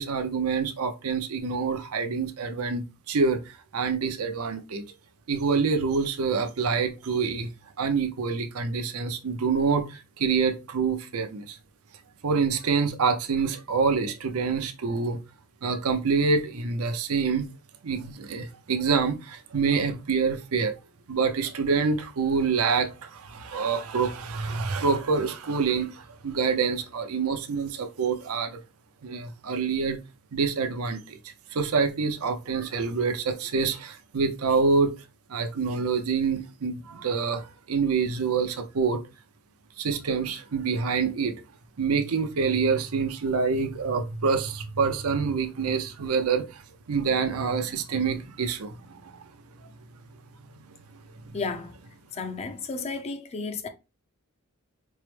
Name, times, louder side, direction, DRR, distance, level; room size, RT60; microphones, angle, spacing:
voice 1, 0.0-4.8 5.3-7.5 7.8-11.6 12.2-15.2 15.6-17.5 17.8-20.7 21.1-28.6 29.0-30.0 30.3-31.2 31.5-34.9 35.3-39.0 39.8-41.3 41.8-46.6 46.9-49.2 51.2-51.3, right 5 dB, 90° right, 0.6 m, -26 dB
voice 2, 51.3-51.7 52.2-53.7, left 4 dB, 30° left, 0.4 m, -32 dB
4.5 x 2.0 x 3.1 m
head